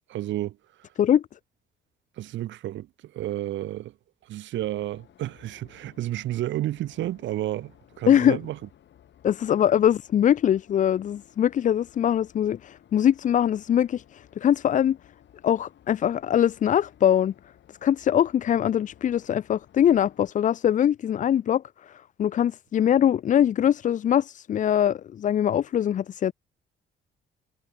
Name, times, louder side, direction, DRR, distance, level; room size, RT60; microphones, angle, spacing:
voice 1, 0.1-0.6 2.2-3.9 4.2-8.6, right 14 dB, 70° right, 0.7 m, -31 dB
sound 1, 4.5-20.3, left 10 dB, 65° left, 3.4 m, -56 dB
voice 2, 8.1-8.4 9.2-15.0 15.4-17.3 17.8-26.3, left 10 dB, 40° left, 0.4 m, -22 dB
cardioid pair, 90°, 20 cm